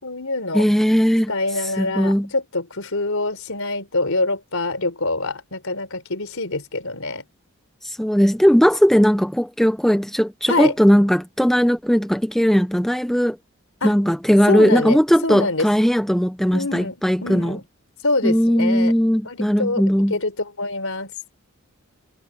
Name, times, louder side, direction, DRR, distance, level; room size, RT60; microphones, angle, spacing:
voice 1, 0.0-0.7 1.3-7.2 10.5-10.7 13.8-13.9 14.5-15.7 16.5-17.0 17.2-17.6 18.0-18.9 19.2-19.8 20.1-21.1, left 2 dB, 70° left, 4.1 m, -25 dB
voice 2, 0.5-1.3 1.6-2.3 7.8-13.4 13.8-17.6 18.2-20.2, equal, ahead, 0.6 m, -18 dB
head